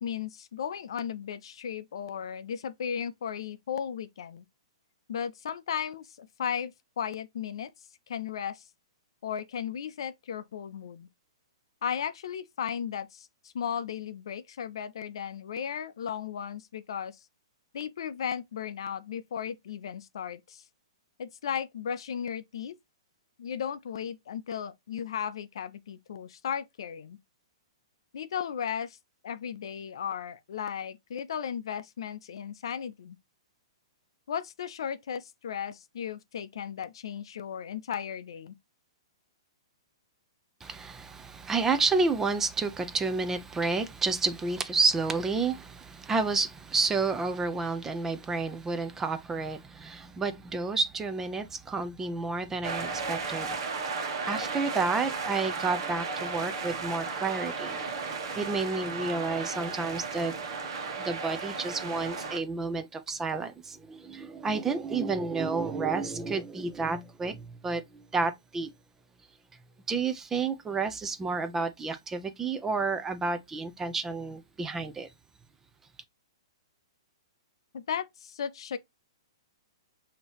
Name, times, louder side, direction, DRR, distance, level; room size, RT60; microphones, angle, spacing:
voice 1, 0.0-4.4 5.1-7.7 8.1-8.6 9.2-11.1 11.8-17.2 17.7-20.6 21.2-22.8 23.4-27.2 28.1-29.0 29.2-33.2 34.3-38.5 77.7-78.8, left 8 dB, 70° left, 0.5 m, -35 dB
voice 2, 40.6-53.6 54.2-57.8 58.3-60.4 61.0-68.7 69.9-75.1, right 4 dB, 15° right, 0.6 m, -30 dB
sound 1, 52.6-62.4, right 4 dB, 60° right, 1.2 m, -34 dB
5.3 x 2.9 x 2.9 m
hypercardioid pair, 130°, 3 cm